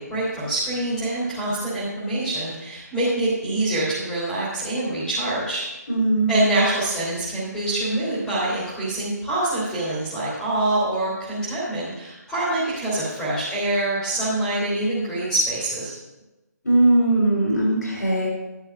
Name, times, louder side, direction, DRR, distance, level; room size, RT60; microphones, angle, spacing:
voice 1, 0.0-5.6 6.3-15.9, right 1 dB, 5° left, -10 dB, 3.3 m, -25 dB
voice 2, 5.9-6.4 16.6-18.3, right 2 dB, 75° left, -3 dB, 3.9 m, -19 dB
13.0 x 11.0 x 2.5 m, 1.0 s
figure-of-eight pair, 145°, 10 cm